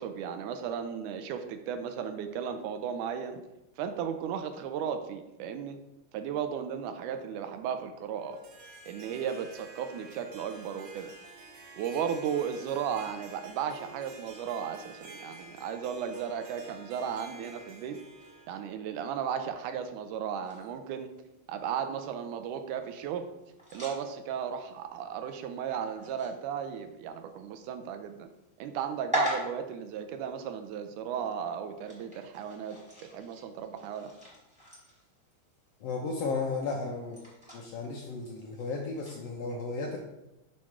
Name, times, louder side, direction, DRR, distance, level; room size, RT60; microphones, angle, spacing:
voice 1, 0.0-3.4 3.8-5.8 6.1-8.4 8.9-11.1 11.8-18.0 18.5-21.1 21.5-23.2 23.7-28.3 28.6-32.8 33.1-34.1, right 8 dB, 90° right, 8 dB, 2.1 m, -35 dB
Harp, 8.2-18.7, right 3 dB, 60° right, 1.7 m, -50 dB
sound 1, 20.4-39.3, equal, 5° right, 1.1 m, -42 dB
voice 2, 35.8-37.2 37.5-40.0, left 4 dB, 80° left, 0 dB, 1.4 m, -34 dB
6.4 x 3.0 x 5.7 m, 0.93 s
omnidirectional pair, 3.5 m